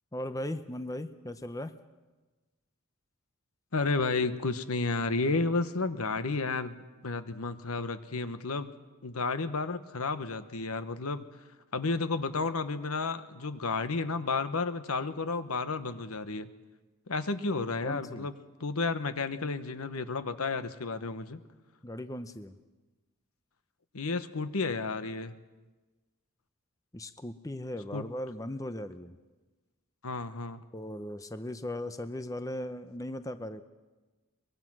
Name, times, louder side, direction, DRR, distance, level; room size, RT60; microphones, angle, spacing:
voice 1, 0.1-1.7 17.8-18.3 21.8-22.6 26.9-29.2 30.7-33.6, left 1 dB, 15° left, 10 dB, 0.6 m, -38 dB
voice 2, 3.7-8.7 9.0-11.2 11.7-16.5 17.1-21.4 23.9-25.4 27.9-28.1 30.0-30.6, left 3 dB, 85° left, 11 dB, 1.1 m, -32 dB
23.5 x 21.5 x 6.2 m, 1.2 s
head